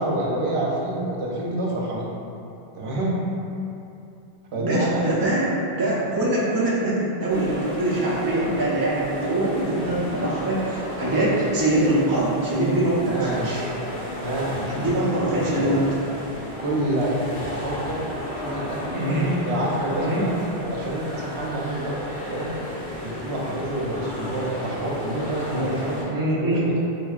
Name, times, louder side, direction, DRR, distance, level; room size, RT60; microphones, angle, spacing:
voice 1, 0.0-2.1 2.8-3.2 4.5-5.2 13.1-13.5 14.2-14.9 15.3-15.8 16.6-18.0 18.3-19.1 19.5-22.5 23.0-26.7, right 1 dB, 80° right, -4 dB, 0.9 m, -28 dB
voice 2, 4.5-13.6 14.8-15.9 18.9-19.3 20.0-20.3 25.5-25.8 26.1-26.7, right 1 dB, 30° right, -7 dB, 0.4 m, -23 dB
sound 1, 7.3-26.0, left 1 dB, 85° left, 1.5 m, -33 dB
4.0 x 2.7 x 2.3 m, 2.6 s
omnidirectional pair, 1.1 m